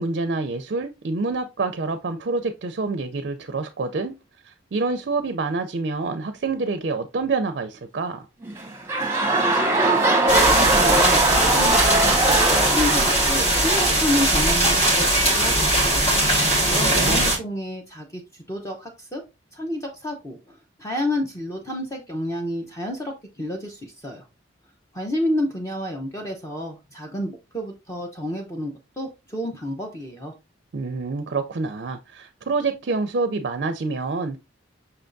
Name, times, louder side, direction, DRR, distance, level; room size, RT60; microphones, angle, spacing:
voice 1, 0.0-4.1 4.4-8.3 16.6-17.2 30.7-34.4, right 3 dB, 55° right, 0.4 m, -27 dB
sound 1, 8.4-14.8 15.5-15.6, right 2 dB, 10° right, 0.9 m, -21 dB
voice 2, 9.3-16.1 16.7-18.2 18.5-19.2 19.5-24.2 24.9-30.3, left 1 dB, 15° left, 0.6 m, -30 dB
sound 2, 10.3-17.4, right 1 dB, 30° left, 1.5 m, -20 dB
5.6 x 3.4 x 2.5 m
head